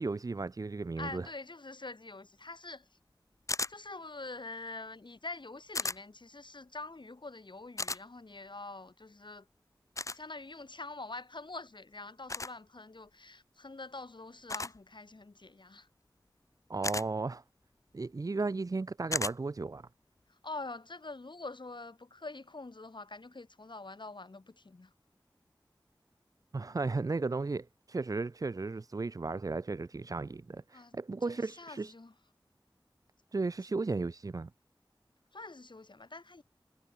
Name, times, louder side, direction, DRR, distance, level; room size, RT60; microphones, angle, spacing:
voice 1, 0.0-1.3 16.7-17.4 17.9-19.8 26.5-31.9 33.3-34.5, right 3 dB, 45° right, 0.4 m, -35 dB
voice 2, 1.0-3.0 3.7-9.5 10.1-15.9 20.3-24.9 30.7-32.1 35.3-36.4, left 3 dB, 65° left, 5.7 m, -45 dB
sound 1, 3.5-3.7 5.7-6.0 7.8-8.0 10.0-10.2 12.3-12.5 14.5-14.8 16.8-17.1 19.1-19.4, left 3 dB, 40° left, 0.5 m, -34 dB
wide cardioid pair, 45°, 8 cm